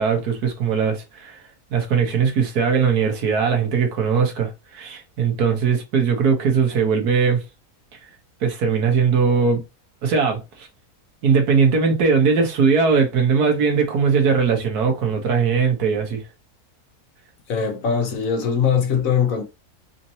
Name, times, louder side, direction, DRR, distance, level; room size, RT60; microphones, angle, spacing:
voice 1, 0.0-1.4 1.7-7.4 8.4-9.6 10.0-10.7 11.2-16.2, right 5 dB, 90° right, 1.6 m, -20 dB
voice 2, 17.5-19.4, left 7 dB, 65° left, 1.3 m, -21 dB
4.3 x 2.7 x 2.9 m
omnidirectional pair, 1.6 m